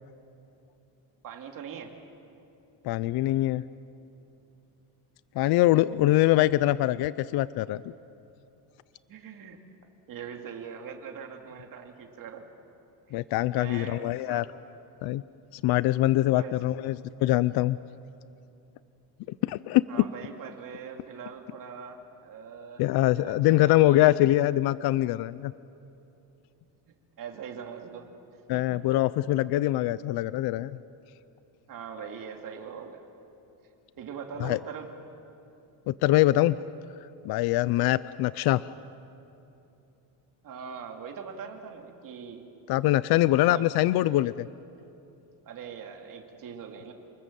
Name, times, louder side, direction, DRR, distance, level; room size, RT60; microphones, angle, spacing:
voice 1, 1.2-1.9 5.4-5.5 9.1-9.6 10.1-12.5 13.1-13.2 13.5-14.4 16.4-16.6 19.9-22.8 23.1-24.2 27.2-28.6 31.7-33.0 34.0-34.9 40.4-42.4 43.5-43.7 45.4-46.9, right 7 dB, 50° right, 3 dB, 2.8 m, -42 dB
voice 2, 2.8-3.6 5.4-7.8 13.1-14.4 15.0-15.2 15.5-17.8 19.4-19.8 22.8-25.5 28.5-30.7 34.4-34.6 35.9-36.6 37.2-38.6 42.7-44.5, left 16 dB, 60° left, 17 dB, 0.6 m, -23 dB
29.5 x 20.5 x 7.6 m, 2.8 s
cardioid pair, 160°, 43 cm